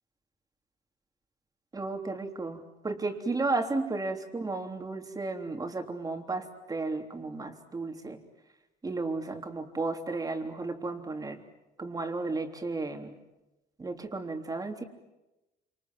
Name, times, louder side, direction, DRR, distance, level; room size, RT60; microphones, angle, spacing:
voice 1, 1.7-8.2 8.8-11.4 11.8-13.1 13.8-14.8, right 3 dB, 20° right, 4 dB, 3.4 m, -33 dB
28.0 x 26.5 x 7.6 m, 1.0 s
cardioid pair, 110°, 17 cm